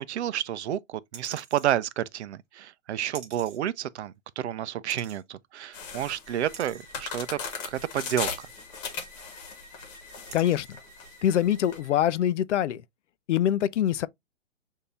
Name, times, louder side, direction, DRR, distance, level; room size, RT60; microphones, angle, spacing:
voice 1, 0.0-8.5, right 11 dB, 60° right, 0.5 m, -30 dB
sound 1, 1.1-1.7 3.1-3.6 4.9-5.2 6.5-6.9 8.1-8.5 9.5-9.6 10.3-10.8 11.3-11.4, right 6 dB, 25° right, 1.6 m, -46 dB
sound 2, 5.7-11.8, left 6 dB, 35° left, 1.4 m, -38 dB
sound 3, 6.2-12.3, right 1 dB, 10° right, 0.6 m, -52 dB
voice 2, 10.3-10.7 11.2-12.8 13.3-14.1, left 11 dB, 70° left, 0.5 m, -24 dB
6.7 x 2.8 x 2.5 m
hypercardioid pair, 140°, 37 cm